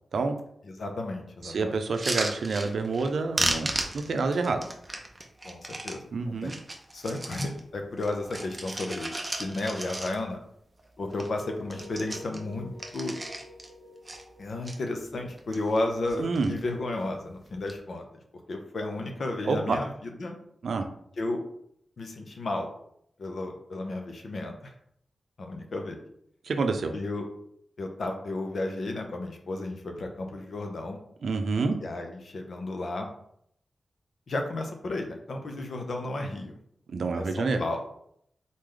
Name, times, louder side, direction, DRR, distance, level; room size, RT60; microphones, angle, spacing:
voice 1, 0.6-1.8 5.4-6.5 6.9-10.4 11.0-13.2 14.4-18.1 18.5-20.4 21.2-21.4 22.0-22.7 23.2-24.7 25.4-26.0 26.9-27.2 27.8-31.0 31.8-33.1 34.3-36.6 37.1-37.8, left 2 dB, 60° left, 3 dB, 0.7 m, -33 dB
voice 2, 1.4-3.7 3.9-4.6 6.1-6.5 16.2-16.5 19.5-19.8 20.6-20.8 26.4-26.9 31.2-31.8 36.9-37.6, right 4 dB, 75° right, 6 dB, 0.5 m, -27 dB
sound 1, 1.8-3.1 3.3-6.0 6.4-7.6 8.0-10.4 10.8-10.9 11.1-11.4 11.7-13.7 14.0-14.8 15.3-15.8 16.1-16.6 17.5-17.7, right 2 dB, 20° right, 0.6 m, -34 dB
sound 2, 11.0-16.8, left 2 dB, 30° left, 1.1 m, -49 dB
4.0 x 3.2 x 3.8 m, 0.70 s
wide cardioid pair, 180°, 0 cm